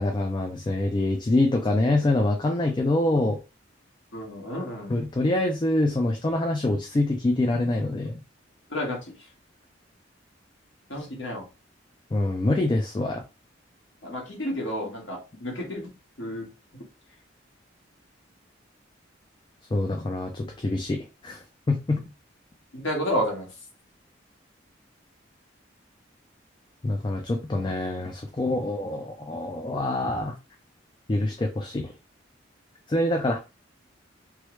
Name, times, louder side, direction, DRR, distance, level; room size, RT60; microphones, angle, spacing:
voice 1, 0.0-3.4 4.9-8.2 12.1-13.2 19.7-22.0 26.8-30.3 31.1-31.9 32.9-33.4, left 2 dB, 25° left, 0.3 m, -25 dB
voice 2, 4.1-4.9 8.7-9.0 10.9-11.4 14.0-15.9 16.2-16.5 22.7-23.5, equal, 80° left, 1.4 m, -30 dB
3.1 x 2.3 x 3.0 m
head